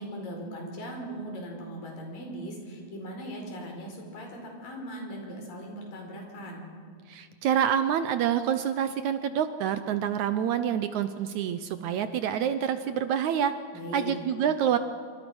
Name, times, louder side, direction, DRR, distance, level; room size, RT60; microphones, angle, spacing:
voice 1, 0.0-6.7 13.7-14.2, equal, 65° left, 1 dB, 6.6 m, -39 dB
voice 2, 7.1-13.5 13.9-14.8, right 9 dB, 75° right, 10 dB, 1.7 m, -27 dB
27.0 x 26.0 x 6.2 m, 2.1 s
omnidirectional pair, 4.3 m